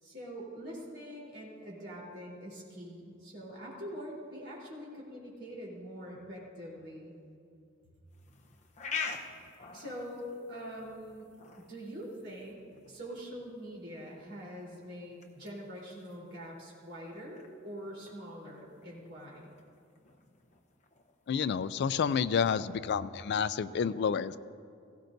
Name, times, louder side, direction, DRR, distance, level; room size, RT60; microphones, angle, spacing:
voice 1, 0.0-7.1 9.7-11.3 11.6-12.6 12.9-19.5, equal, 55° right, -4 dB, 3.7 m, -44 dB
sound 1, 8.1-22.2, left 5 dB, 35° left, 0.8 m, -47 dB
voice 2, 21.3-24.4, left 6 dB, 55° left, 13 dB, 0.3 m, -29 dB
17.5 x 15.5 x 2.6 m, 2.4 s
head